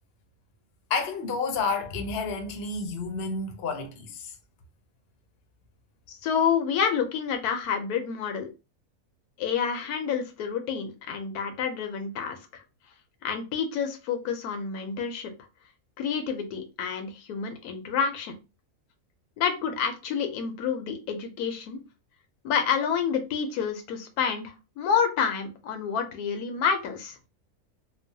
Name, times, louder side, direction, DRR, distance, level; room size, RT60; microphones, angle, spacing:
voice 1, 0.9-4.4, left 4 dB, 60° left, 0.7 m, -30 dB
voice 2, 6.1-8.5 9.4-12.6 13.2-15.3 16.0-18.3 19.4-21.8 22.4-27.2, left 7 dB, 90° left, 1.1 m, -28 dB
2.9 x 2.0 x 2.7 m
omnidirectional pair, 1.6 m